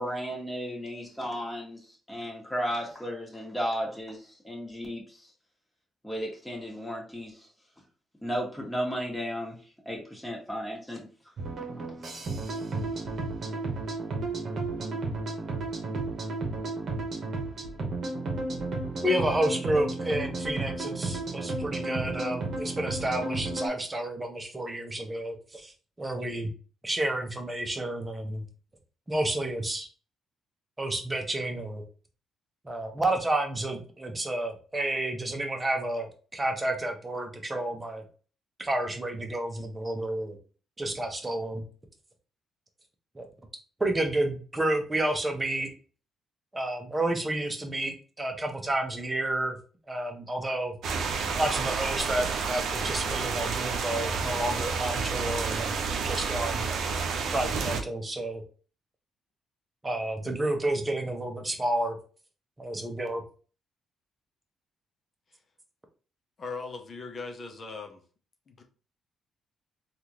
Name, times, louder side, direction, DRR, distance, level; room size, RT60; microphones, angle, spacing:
voice 1, 0.0-5.3 6.0-7.5 8.2-9.6 9.8-11.1, equal, 5° left, 1.5 m, -34 dB
sound 1, 11.4-23.7, right 2 dB, 55° right, 1.0 m, -33 dB
voice 2, 19.0-25.7 26.0-26.5 26.8-28.4 29.1-29.9 30.8-31.8 32.6-38.0 38.6-40.4 40.8-41.6 43.1-43.3 43.8-45.7 46.5-49.6 49.9-50.7 51.4-55.7 56.0-56.6 57.3-58.4 59.8-62.0 62.6-63.2, right 1 dB, 20° right, 0.8 m, -30 dB
sound 2, 50.8-57.8, right 5 dB, 70° right, 0.6 m, -30 dB
voice 3, 66.4-68.0 68.5-68.6, left 4 dB, 45° left, 0.7 m, -39 dB
3.5 x 2.5 x 2.9 m
cardioid pair, 90°, 0 cm